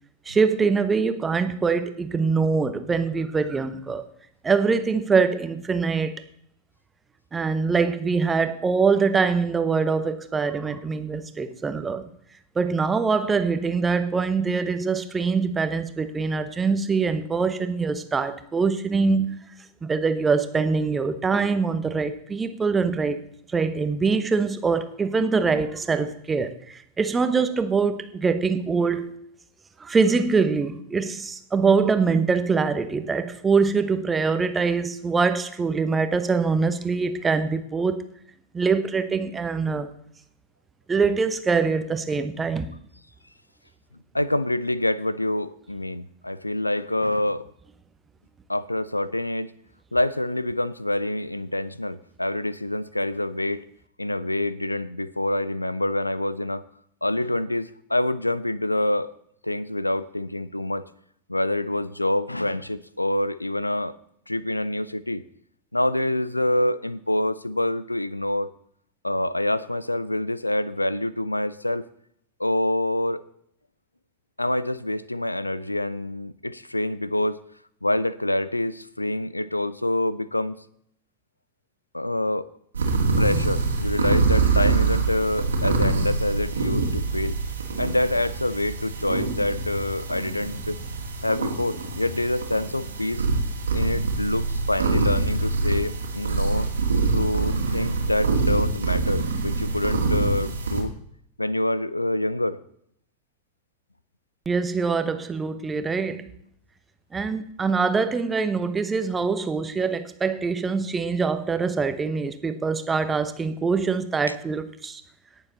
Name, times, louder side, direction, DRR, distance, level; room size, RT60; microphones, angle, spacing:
voice 1, 0.3-4.1 4.4-6.2 7.3-12.0 12.6-19.4 19.8-23.2 23.5-29.1 29.8-38.0 38.5-39.9 40.9-42.7 104.5-106.3 107.1-115.0, right 4 dB, 15° right, 1.0 m, -24 dB
voice 2, 44.1-47.4 48.5-49.5 49.9-53.6 54.0-56.6 57.0-59.1 59.4-60.8 61.3-63.9 64.3-65.2 65.7-68.5 69.0-71.9 72.4-73.2 74.4-77.4 77.8-80.6 81.9-82.5 83.2-87.4 87.8-90.8 91.2-93.2 93.7-96.7 97.1-100.9 101.4-102.6, left 1 dB, 85° left, 0.4 m, -26 dB
sound 1, 82.7-100.8, right 3 dB, 70° right, 2.1 m, -25 dB
18.5 x 6.9 x 4.0 m
figure-of-eight pair, 90°, 0 cm